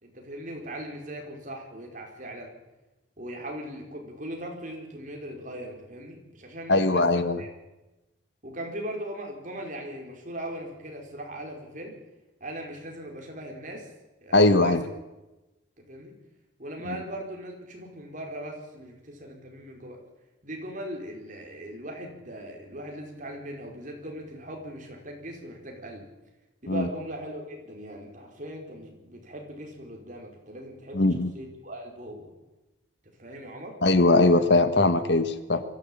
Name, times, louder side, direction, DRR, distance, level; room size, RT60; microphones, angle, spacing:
voice 1, 0.0-2.5 3.2-7.0 7.4-7.5 8.4-11.9 12.4-13.9 14.2-14.7 15.8-16.1 16.6-20.0 20.4-26.1 26.6-31.1 31.3-32.3 33.2-33.7, right 1 dB, 45° right, 1 dB, 4.9 m, -39 dB
voice 2, 6.7-7.4 14.3-14.8 26.7-26.9 30.9-31.3 33.8-35.6, left 2 dB, 65° left, 11 dB, 1.5 m, -20 dB
23.0 x 15.0 x 8.8 m, 1.0 s
head